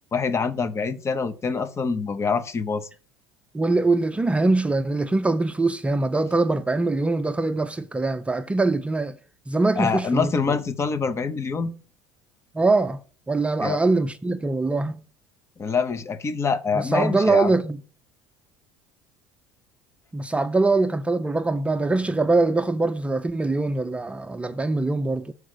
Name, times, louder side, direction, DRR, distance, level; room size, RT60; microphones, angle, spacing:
voice 1, 0.1-2.9 9.8-11.7 13.6-13.8 15.6-17.5, left 5 dB, 30° left, 0.9 m, -25 dB
voice 2, 3.5-9.2 9.5-10.3 12.5-13.0 13.3-15.0 16.9-17.8 20.1-25.3, right 3 dB, 15° right, 0.5 m, -23 dB
6.1 x 4.8 x 6.6 m
supercardioid pair, 90°, 9 cm